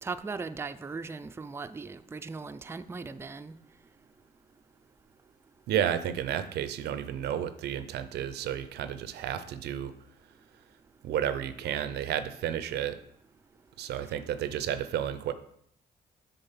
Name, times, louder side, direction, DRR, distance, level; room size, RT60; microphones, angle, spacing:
voice 1, 0.0-3.5, right 4 dB, 15° right, 10 dB, 0.4 m, -38 dB
voice 2, 5.7-9.9 11.0-13.0 13.8-15.3, right 10 dB, 80° right, 13 dB, 0.5 m, -32 dB
6.7 x 4.0 x 5.7 m, 0.70 s
cardioid pair, 75°, 17 cm